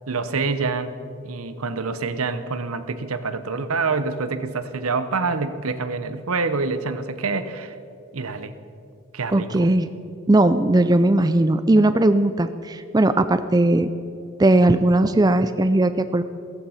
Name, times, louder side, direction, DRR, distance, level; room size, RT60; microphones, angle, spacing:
voice 1, 0.1-0.9 1.2-7.8 8.1-8.5 9.1-9.7, right 4 dB, 85° right, 11 dB, 1.0 m, -26 dB
voice 2, 9.3-9.9 10.3-13.9 14.4-16.2, right 1 dB, 20° right, 10 dB, 0.4 m, -18 dB
15.0 x 14.5 x 5.8 m, 2.6 s
head